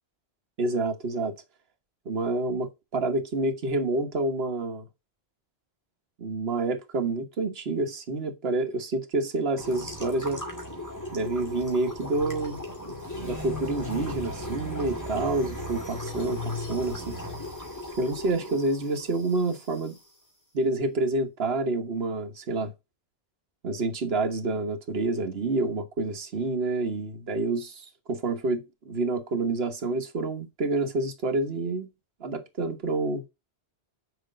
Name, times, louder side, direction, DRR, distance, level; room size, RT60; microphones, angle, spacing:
voice 1, 0.6-1.3 2.0-4.9 6.2-10.4 11.1-17.2 18.0-19.9 20.5-22.7 23.6-31.9 32.2-33.2, right 2 dB, 65° right, 1.5 m, -28 dB
sound 1, 9.6-20.0, left 1 dB, 15° left, 2.3 m, -37 dB
6.6 x 5.0 x 6.5 m
omnidirectional pair, 1.1 m